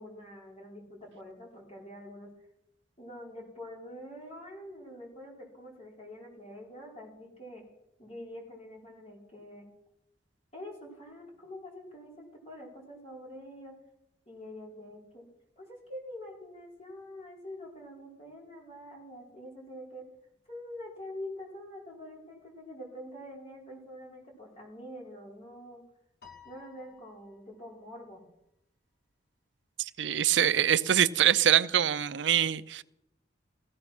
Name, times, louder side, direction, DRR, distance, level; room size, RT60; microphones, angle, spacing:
voice 1, 0.0-2.3 3.0-7.6 8.0-9.7 10.5-13.7 14.3-15.2 15.6-20.0 20.5-25.8 26.4-28.2, left 1 dB, 35° left, 4.8 m, -45 dB
Piano, 26.2-27.8, left 7 dB, 60° left, 2.0 m, -55 dB
voice 2, 29.8-32.8, right 10 dB, 75° right, 0.5 m, -24 dB
16.0 x 14.5 x 6.0 m
head